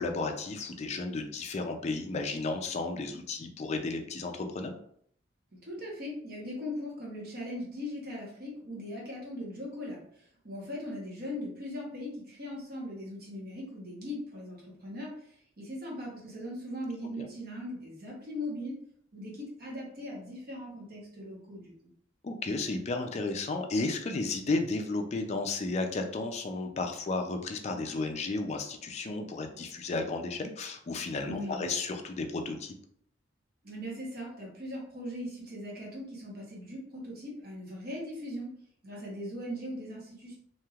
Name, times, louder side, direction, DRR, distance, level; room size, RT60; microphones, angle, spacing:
voice 1, 0.0-4.7 17.2-17.3 22.2-32.7, left 3 dB, 35° left, 4 dB, 0.3 m, -33 dB
voice 2, 5.6-10.0 10.4-18.8 19.1-21.7 31.2-31.7 33.6-38.5 38.8-40.4, left 1 dB, 50° right, -3 dB, 1.0 m, -39 dB
3.1 x 2.7 x 2.3 m, 0.66 s
head